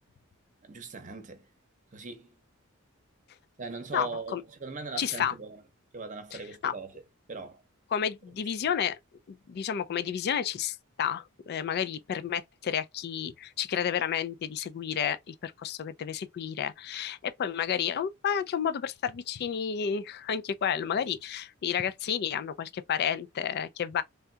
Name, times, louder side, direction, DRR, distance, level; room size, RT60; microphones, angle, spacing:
voice 1, 0.6-1.5 1.9-2.4 3.6-5.6 5.9-7.0 7.3-7.6, right 4 dB, 35° right, 0.8 m, -40 dB
voice 2, 3.9-4.4 5.0-5.3 6.3-6.7 7.9-9.0 9.3-24.0, left 8 dB, 50° left, 0.3 m, -31 dB
3.4 x 2.7 x 2.2 m
head